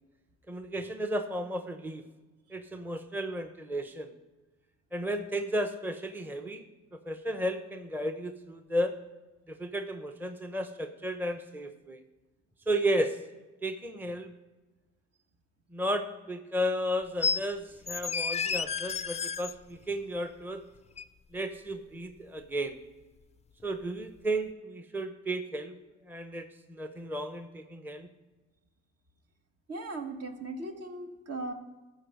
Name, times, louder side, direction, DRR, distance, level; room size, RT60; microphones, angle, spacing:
voice 1, 0.5-2.0 2.5-4.1 4.9-6.6 6.9-9.0 9.5-12.0 12.7-13.2 13.6-14.3 15.7-20.6 21.3-22.8 23.6-25.7 26.1-28.1, right 1 dB, 5° right, 8 dB, 0.7 m, -33 dB
sound 1, 17.2-17.4 17.9-19.5 21.0-21.1, left 5 dB, 25° left, 0.4 m, -31 dB
voice 2, 29.7-31.5, right 2 dB, 55° right, 5 dB, 1.4 m, -38 dB
13.5 x 4.7 x 6.4 m, 1.2 s
cardioid pair, 90°, 30 cm